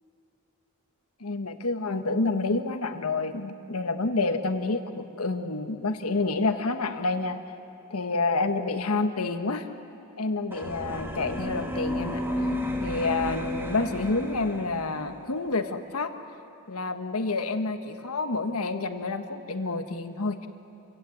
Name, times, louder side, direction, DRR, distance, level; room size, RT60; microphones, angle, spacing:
voice 1, 1.2-7.4 7.9-9.7 10.2-12.2 12.8-16.1 16.7-20.5, left 3 dB, 90° left, 8 dB, 1.3 m, -28 dB
sound 1, 10.5-15.2, left 1 dB, 10° right, 1.8 m, -32 dB
27.0 x 16.0 x 8.4 m, 2.9 s
head